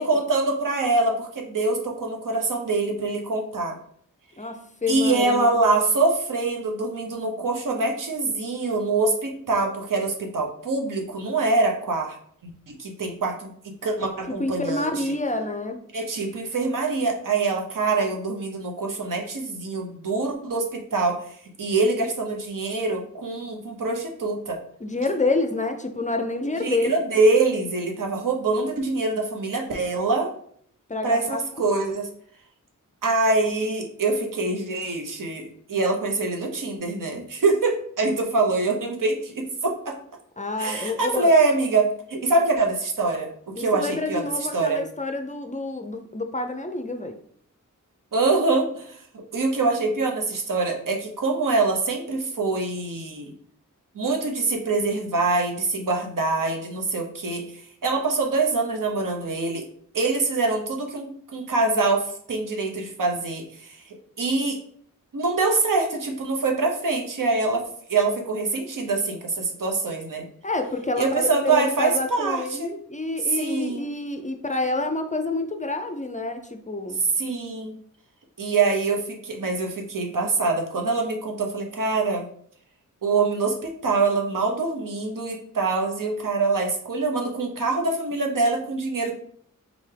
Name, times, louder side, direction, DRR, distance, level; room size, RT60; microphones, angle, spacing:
voice 1, 0.0-3.8 4.9-12.2 12.7-13.5 13.8-14.9 15.9-21.2 21.6-24.6 26.6-30.3 31.0-32.1 33.0-39.9 40.6-44.2 44.5-44.8 48.1-49.0 49.3-53.3 53.9-57.4 57.8-59.7 59.9-63.8 64.2-64.6 65.1-67.6 67.9-70.2 71.0-72.7 73.3-73.9 77.2-77.7 78.4-82.2 83.0-89.1, right 3 dB, 75° right, 2 dB, 0.9 m, -24 dB
voice 2, 4.4-5.6 14.3-15.8 24.8-26.9 30.9-31.4 40.4-41.3 43.6-47.2 70.4-77.0, left 2 dB, 25° left, 5 dB, 0.5 m, -28 dB
3.8 x 3.4 x 3.3 m, 0.62 s
wide cardioid pair, 75°, 33 cm